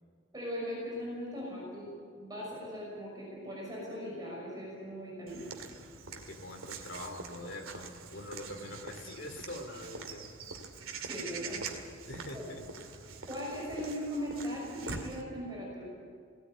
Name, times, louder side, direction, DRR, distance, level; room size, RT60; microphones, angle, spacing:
voice 1, 0.3-1.9 2.1-5.4 11.0-11.6 12.3-12.5 13.2-15.8, equal, 20° right, -4 dB, 6.1 m, -39 dB
Walk footsteps / Bird vocalization bird call bird song, 5.3-15.2, right 4 dB, 80° right, 2.3 m, -44 dB
voice 2, 6.0-10.3 12.1-12.6, left 1 dB, 60° left, 4 dB, 2.6 m, -44 dB
19.0 x 18.0 x 9.2 m, 2.1 s
head